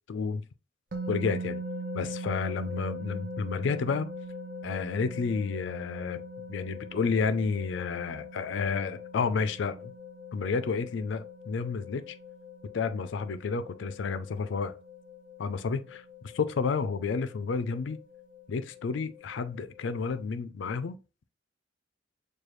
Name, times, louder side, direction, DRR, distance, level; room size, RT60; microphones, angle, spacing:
voice 1, 0.1-0.4 1.1-1.6 1.9-4.1 4.6-6.2 6.5-9.9 10.3-12.1 12.7-14.7 15.4-16.0 16.3-18.0 18.5-21.0, left 5 dB, 70° left, 0.4 m, -31 dB
sound 1, 0.9-20.3, left 1 dB, 45° right, 0.7 m, -42 dB
4.8 x 2.3 x 3.0 m
head